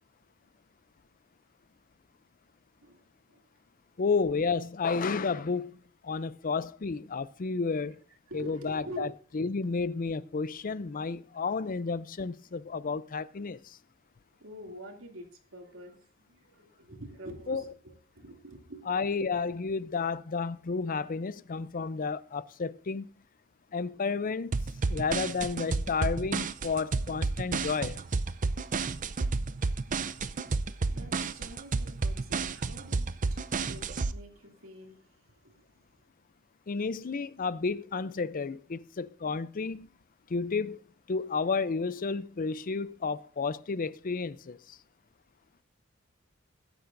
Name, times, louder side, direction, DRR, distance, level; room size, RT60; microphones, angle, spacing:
voice 1, 2.8-3.5 7.5-8.0 8.3-9.2 9.6-9.7 14.4-18.9 29.6-36.0, right 1 dB, 80° right, 2.7 m, -48 dB
voice 2, 4.0-5.8 6.0-8.0 8.3-9.1 9.3-13.8 17.5-17.6 18.9-23.1 23.7-24.5 24.9-28.0 36.7-39.9 40.3-40.8 41.1-44.8, left 4 dB, 40° left, 0.5 m, -31 dB
sound 1, 24.5-34.1, right 4 dB, 40° right, 0.6 m, -31 dB
20.5 x 10.5 x 2.6 m
head